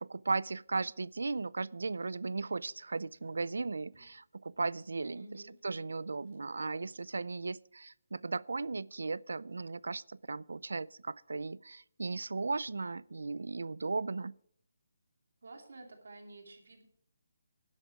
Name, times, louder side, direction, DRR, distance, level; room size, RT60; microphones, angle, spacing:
voice 1, 0.0-14.3, right 3 dB, 80° right, 0.4 m, -36 dB
sound 1, 2.0-4.2 5.3-7.4, right 1 dB, 25° right, 5.7 m, -69 dB
voice 2, 5.2-5.5 15.4-16.9, right 2 dB, 60° right, 2.9 m, -51 dB
12.0 x 10.5 x 4.7 m
hypercardioid pair, 180°, 0 cm